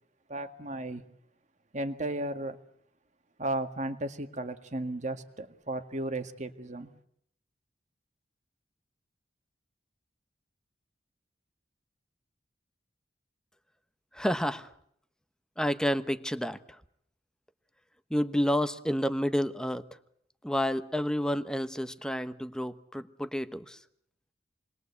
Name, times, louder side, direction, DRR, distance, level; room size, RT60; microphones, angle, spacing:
voice 1, 0.3-1.0 1.7-2.6 3.4-6.9, right 1 dB, 40° right, 1.9 m, -34 dB
voice 2, 14.1-14.7 15.6-16.6 18.1-19.8 20.4-23.8, equal, 5° left, 1.0 m, -29 dB
28.5 x 21.5 x 8.3 m
head